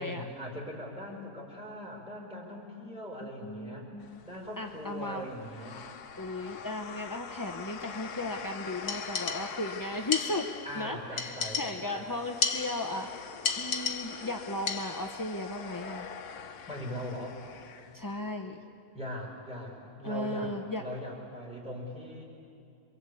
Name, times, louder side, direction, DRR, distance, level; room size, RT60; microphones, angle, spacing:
voice 1, 0.0-3.9 4.2-5.8 10.6-12.1 16.7-17.4 18.9-22.2, equal, 5° right, -2 dB, 5.4 m, -40 dB
voice 2, 3.2-4.2 4.6-5.3 6.2-10.5 10.7-13.3 13.6-16.1 17.9-18.6 20.0-20.8, left 2 dB, 20° left, 2 dB, 0.5 m, -36 dB
Long Fuzz A, 4.0-18.3, left 6 dB, 75° left, 1.5 m, -45 dB
sound 1, 8.9-9.7 10.1-10.7 11.2-12.0 12.4-13.1 13.4-14.3 14.7-15.2, left 5 dB, 60° left, 1.6 m, -33 dB
27.5 x 23.0 x 8.5 m, 2.6 s
omnidirectional pair, 1.7 m